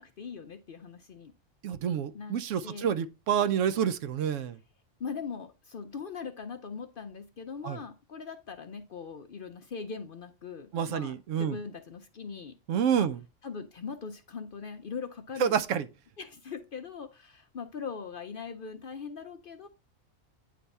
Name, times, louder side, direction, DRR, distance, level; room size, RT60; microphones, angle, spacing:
voice 1, 0.0-1.3 2.1-2.4 2.6-2.9 5.0-12.5 12.9-13.1 13.4-15.5 16.2-19.7, left 5 dB, 55° left, 0.6 m, -41 dB
voice 2, 1.6-4.6 7.6-7.8 10.7-11.6 12.7-13.2 15.4-15.9, right 8 dB, 70° right, 0.9 m, -28 dB
9.3 x 3.4 x 4.1 m
omnidirectional pair, 1.4 m